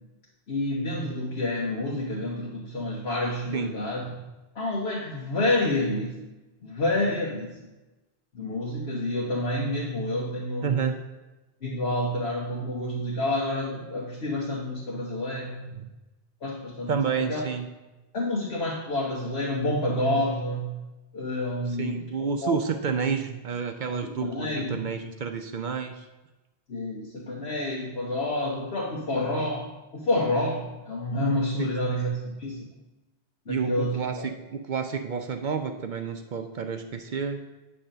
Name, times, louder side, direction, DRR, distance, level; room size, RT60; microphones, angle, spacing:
voice 1, 0.5-4.1 4.5-6.1 6.6-7.6 8.3-10.8 11.6-15.7 16.4-17.5 18.1-20.7 21.1-22.6 24.0-24.8 26.7-32.6 33.5-34.3, left 1 dB, 85° left, -4 dB, 1.3 m, -29 dB
voice 2, 10.6-11.0 15.7-15.9 16.9-17.7 21.8-26.1 31.6-31.7 33.5-37.5, right 6 dB, 55° right, 5 dB, 0.6 m, -30 dB
8.7 x 3.3 x 6.6 m, 1.1 s
omnidirectional pair, 1.1 m